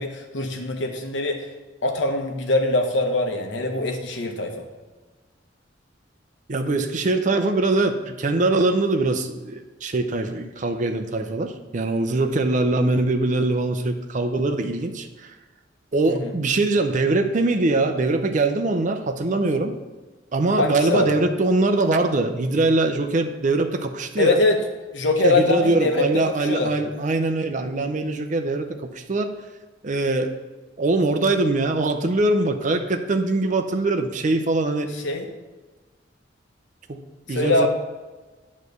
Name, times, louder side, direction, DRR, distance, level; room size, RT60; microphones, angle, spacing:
voice 1, 0.0-1.5 1.8-4.7 16.1-16.3 20.6-21.1 24.2-24.6 24.9-26.7 35.0-35.3 37.3-37.7, left 2 dB, 75° left, 3 dB, 1.1 m, -23 dB
voice 2, 6.5-15.3 15.9-19.7 20.3-24.4 25.2-29.3 29.8-30.3 30.8-34.9 36.9-37.0 37.3-37.7, right 2 dB, 45° right, 6 dB, 0.5 m, -22 dB
9.1 x 3.2 x 6.6 m, 1.2 s
head